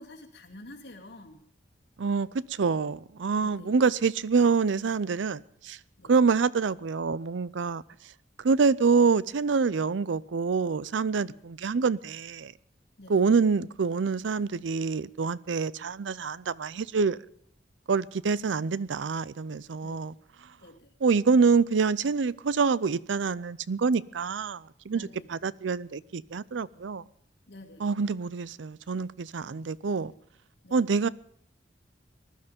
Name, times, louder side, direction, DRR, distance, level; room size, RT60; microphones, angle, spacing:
voice 1, 0.0-1.4 3.4-3.8 6.0-6.2 11.2-11.4 13.0-13.2 19.8-20.1 20.6-20.9 24.9-25.3 27.5-27.8 30.6-30.9, left 1 dB, 70° left, 2.8 m, -48 dB
voice 2, 2.0-5.8 6.1-7.8 8.4-12.5 13.1-17.2 17.9-20.1 21.0-25.0 25.3-27.0 27.8-30.1 30.7-31.1, right 5 dB, 85° right, 0.5 m, -26 dB
20.0 x 12.0 x 5.2 m
head